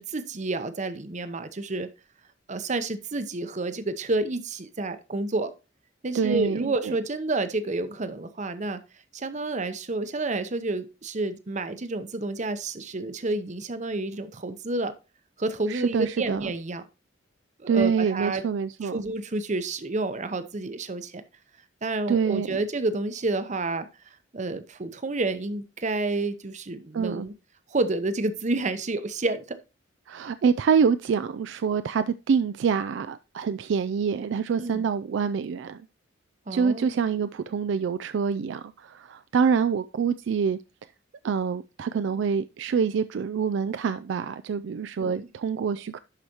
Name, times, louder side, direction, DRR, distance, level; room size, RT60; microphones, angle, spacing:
voice 1, 0.0-1.9 2.5-5.5 6.0-8.8 9.1-14.9 15.4-16.8 17.6-18.4 18.8-21.2 21.8-23.9 24.3-27.3 27.7-29.6 34.6-34.9 36.5-37.0 45.0-45.3, right 2 dB, 40° right, 0.8 m, -29 dB
voice 2, 6.1-6.9 15.7-16.5 17.7-19.0 22.1-22.6 26.9-27.3 30.1-35.8 36.5-40.6 41.2-46.0, right 6 dB, 65° right, 0.3 m, -26 dB
11.5 x 4.9 x 2.9 m
head